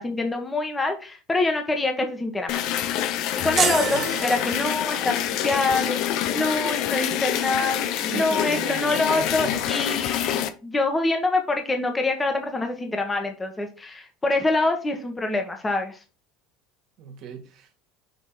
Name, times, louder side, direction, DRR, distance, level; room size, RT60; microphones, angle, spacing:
voice 1, 0.0-2.6 3.4-6.0 6.3-7.9 8.1-16.0, left 2 dB, 15° left, 1.3 m, -25 dB
sound 1, 2.5-10.5, left 11 dB, 60° left, 0.7 m, -26 dB
sound 2, 3.6-5.1, right 9 dB, 40° right, 0.5 m, -28 dB
voice 2, 8.0-9.6 17.0-17.9, right 7 dB, 55° right, 2.0 m, -38 dB
6.3 x 3.5 x 4.5 m
supercardioid pair, 105°, 0 cm